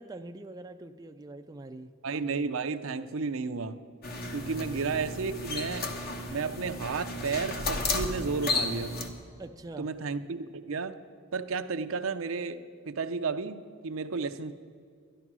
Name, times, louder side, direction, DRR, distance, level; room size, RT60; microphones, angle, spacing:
voice 1, 0.0-1.9 9.4-9.9, right 2 dB, 20° right, 6 dB, 0.4 m, -44 dB
voice 2, 2.0-3.8 4.3-5.9 6.3-8.9 9.8-11.0 11.3-13.6 13.8-14.5, right 4 dB, 75° right, 10 dB, 0.6 m, -32 dB
sound 1, 4.0-9.1, left 2 dB, 50° left, 1.2 m, -33 dB
12.0 x 11.0 x 6.1 m, 2.2 s
head